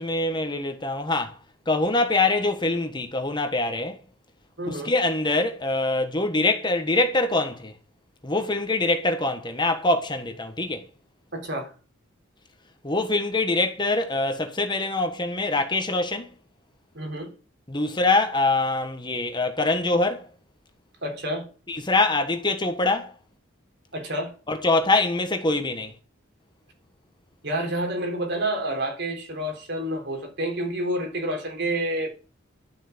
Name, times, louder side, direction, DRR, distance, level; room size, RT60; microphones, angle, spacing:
voice 1, 0.0-1.4 1.7-4.0 4.7-7.7 8.2-10.8 12.8-16.3 17.7-20.3 21.7-23.1 24.5-25.9, left 2 dB, 20° left, 1.4 m, -24 dB
voice 2, 4.6-4.9 11.3-11.7 16.9-17.3 21.0-21.5 23.9-24.3 27.4-32.1, right 1 dB, 55° right, 3.8 m, -29 dB
12.0 x 7.6 x 6.9 m
head